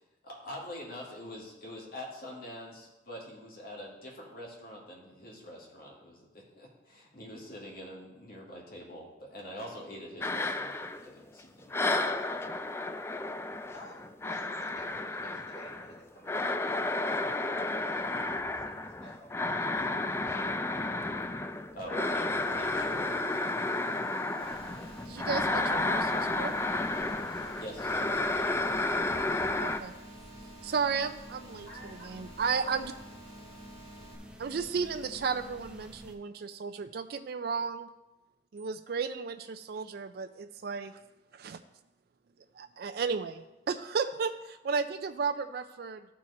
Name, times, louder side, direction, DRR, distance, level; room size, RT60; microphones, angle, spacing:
voice 1, 0.2-12.2 21.7-23.5 27.6-28.7, equal, 55° left, -2 dB, 2.2 m, -45 dB
sound 1, 10.2-11.4 11.7-29.8, left 2 dB, 15° left, 0.3 m, -32 dB
voice 2, 13.7-20.2 22.0-22.9 31.6-32.9, equal, 75° left, -5 dB, 2.4 m, -54 dB
sound 2, 22.4-34.2, right 2 dB, 35° left, 1.9 m, -54 dB
sound 3, 24.4-36.1, equal, 5° right, 0.7 m, -49 dB
voice 3, 25.1-26.5 29.6-29.9 30.6-31.7 32.0-32.9 34.4-37.9 38.5-41.0 41.3-41.6 42.6-46.0, right 5 dB, 60° right, 9 dB, 0.4 m, -34 dB
13.5 x 4.6 x 4.2 m, 1.0 s
head